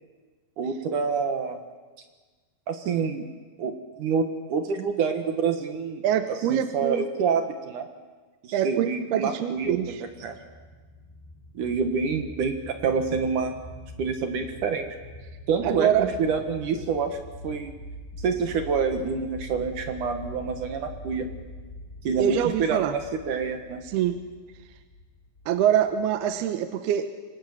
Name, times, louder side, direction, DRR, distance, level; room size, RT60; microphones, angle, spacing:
voice 1, 0.6-1.6 2.7-3.3 3.6-7.9 8.4-9.8 10.2-10.4 11.5-13.5 14.0-14.9 15.5-17.2 17.4-17.7 18.2-21.3 22.0-23.8, right 5 dB, 60° right, 6 dB, 2.5 m, -27 dB
voice 2, 6.0-7.0 8.5-10.0 15.6-16.1 22.2-23.0 23.8-24.2 25.5-27.1, right 10 dB, 75° right, 9 dB, 2.8 m, -24 dB
sound 1, 9.5-26.6, left 1 dB, 10° left, 7.7 m, -44 dB
26.5 x 25.0 x 7.2 m, 1.4 s
omnidirectional pair, 4.8 m